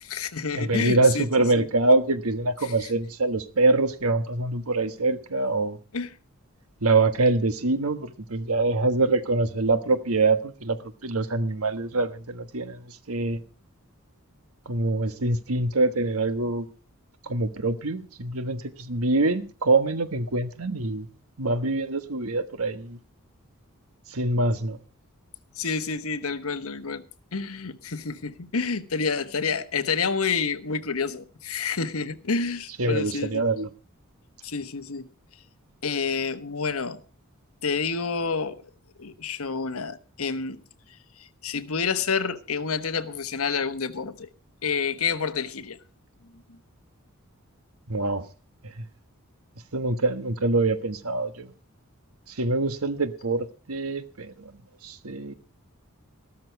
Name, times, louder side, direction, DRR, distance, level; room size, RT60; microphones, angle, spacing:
voice 1, 0.0-1.3 1.5-1.7 2.6-2.7 5.9-6.1 25.5-27.0 27.3-33.5 34.4-35.1 35.8-37.0 37.6-38.6 39.0-40.6 41.4-44.3 44.6-45.8, left 5 dB, 75° left, 1.2 m, -28 dB
voice 2, 0.5-5.8 6.8-10.8 11.0-13.4 14.7-16.7 17.3-21.1 21.4-23.0 24.1-24.8 32.8-33.7 47.9-48.3 48.8-48.9 49.7-51.5 52.4-54.5 54.8-55.3, right 2 dB, 75° right, 1.3 m, -24 dB
14.0 x 13.0 x 4.6 m
head